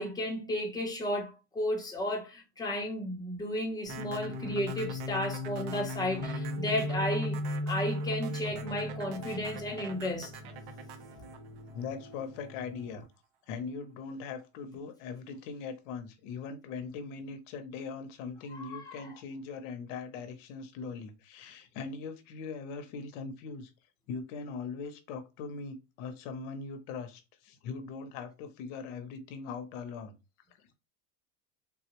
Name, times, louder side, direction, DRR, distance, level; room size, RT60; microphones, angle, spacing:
voice 1, 0.0-10.3 18.5-19.1, left 1 dB, 10° left, 0.9 m, -33 dB
sound 1, 3.8-13.0, left 2 dB, 25° right, 1.7 m, -37 dB
sound 2, 3.9-12.3, right 9 dB, 60° right, 0.8 m, -47 dB
voice 2, 11.7-13.1 13.5-23.7 24.1-30.1 30.6-30.7, left 5 dB, 70° left, 0.9 m, -40 dB
3.7 x 2.4 x 2.9 m
cardioid pair, 145°, 38 cm